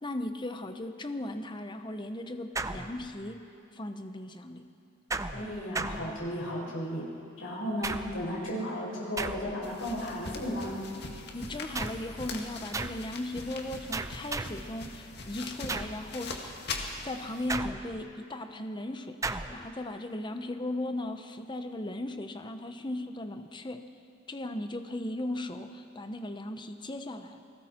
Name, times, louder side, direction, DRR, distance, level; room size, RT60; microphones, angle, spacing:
voice 1, 0.0-3.4 3.7-4.7 11.3-16.8 17.0-23.8 24.3-27.4, left 1 dB, 25° left, 7 dB, 0.9 m, -37 dB
sound 1, 2.6-3.4 5.1-6.6 7.8-8.4 9.2-9.8 11.7-12.2 12.7-13.1 13.9-14.7 15.7-16.1 17.5-18.1 19.2-19.7, right 3 dB, 15° right, 0.6 m, -36 dB
voice 2, 5.3-7.1 7.4-10.7, equal, 85° left, -4 dB, 5.7 m, -34 dB
sound 2, 9.6-17.6, left 3 dB, 55° left, 2.0 m, -41 dB
29.5 x 20.0 x 4.5 m, 2.5 s
head